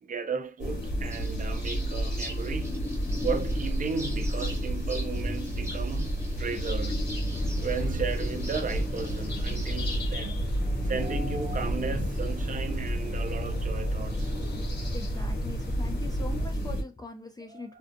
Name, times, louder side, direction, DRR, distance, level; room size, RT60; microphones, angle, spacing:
voice 1, 0.0-2.7 3.2-7.0 7.6-14.3 17.5-17.8, right 5 dB, 50° right, 0.4 m, -35 dB
sound 1, 0.6-16.8, equal, 80° left, 1.1 m, -30 dB
sound 2, 1.1-10.0, equal, 15° right, 0.7 m, -44 dB
sound 3, 7.3-16.5, left 1 dB, 60° left, 0.8 m, -39 dB
voice 2, 14.9-17.8, left 3 dB, 20° left, 0.3 m, -41 dB
2.5 x 2.3 x 2.5 m
wide cardioid pair, 110°, 18 cm